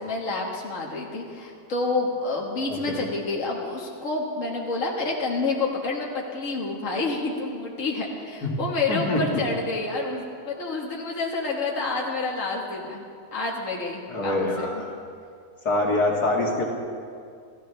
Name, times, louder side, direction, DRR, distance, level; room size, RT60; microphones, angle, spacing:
voice 1, 0.0-13.0 13.3-14.9, left 3 dB, 55° left, -2 dB, 2.2 m, -29 dB
voice 2, 2.7-3.0 8.4-8.5 8.9-9.4 14.1-14.9 15.6-16.6, left 2 dB, 85° left, -2 dB, 2.6 m, -25 dB
28.0 x 14.0 x 3.4 m, 2.3 s
omnidirectional pair, 1.6 m